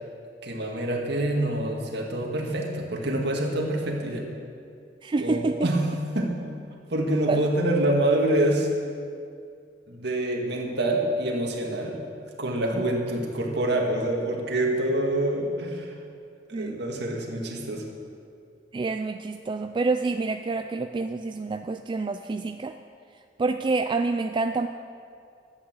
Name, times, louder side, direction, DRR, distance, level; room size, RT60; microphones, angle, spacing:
voice 1, 0.4-4.3 5.2-5.9 6.1-6.4 6.9-8.7 9.9-12.0 12.4-15.9 16.5-17.8, right 1 dB, 65° right, 0 dB, 2.0 m, -26 dB
voice 2, 5.0-5.7 7.3-7.4 12.7-12.9 16.5-16.8 18.7-22.7 23.4-24.7, right 3 dB, 25° right, 7 dB, 0.3 m, -27 dB
11.5 x 8.7 x 7.6 m, 2.4 s
head